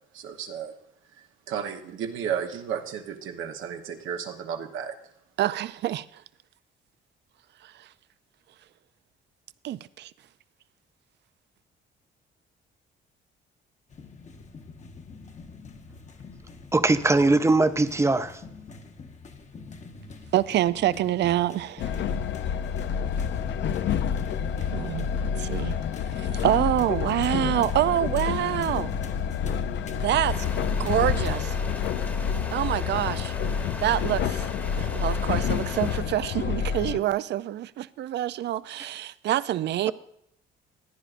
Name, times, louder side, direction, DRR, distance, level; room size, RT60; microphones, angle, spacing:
voice 1, 0.1-0.7 1.5-5.0, right 8 dB, 80° right, 1.0 m, -33 dB
voice 2, 5.4-6.1 7.6-7.9 9.6-10.1 20.3-22.0 24.7-25.1 25.4-25.8 26.2-28.9 30.0-30.5 30.8-31.6 32.5-33.3 33.8-34.5 34.8-39.9, right 13 dB, 60° right, 0.4 m, -26 dB
sound 1, 13.9-31.5, left 3 dB, 35° left, 0.9 m, -42 dB
voice 3, 16.7-18.4, right 2 dB, 15° right, 0.6 m, -21 dB
Train, 21.8-37.0, left 7 dB, 65° left, 0.5 m, -28 dB
sound 2, 30.3-36.0, left 1 dB, 10° left, 1.0 m, -40 dB
15.5 x 9.8 x 2.5 m
cardioid pair, 90°, 20 cm